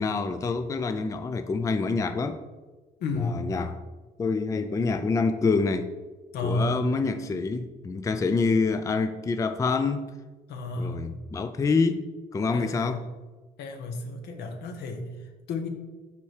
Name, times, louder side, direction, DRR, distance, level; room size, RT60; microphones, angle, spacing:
voice 1, 0.0-2.4 3.1-3.8 4.2-5.9 6.4-10.1 10.8-12.0 12.3-13.0, left 4 dB, 20° left, 9 dB, 0.4 m, -26 dB
voice 2, 3.0-3.5 6.3-6.8 10.5-11.1 12.5-13.1 13.6-15.7, left 2 dB, 75° left, 5 dB, 1.2 m, -32 dB
5.8 x 4.6 x 6.4 m, 1.3 s
cardioid pair, 110°, 17 cm